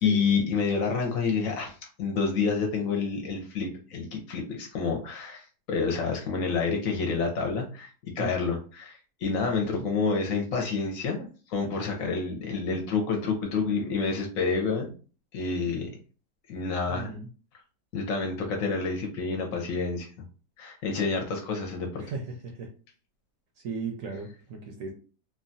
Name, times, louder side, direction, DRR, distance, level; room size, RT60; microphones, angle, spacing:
voice 1, 0.0-14.9 15.3-15.9 16.5-17.1 17.9-20.1 20.6-22.0, left 4 dB, 65° left, 1 dB, 0.9 m, -28 dB
voice 2, 9.6-9.9 16.9-17.3 22.0-22.7 23.6-24.9, right 4 dB, 70° right, 2 dB, 0.8 m, -37 dB
3.0 x 2.2 x 2.6 m, 0.37 s
omnidirectional pair, 1.7 m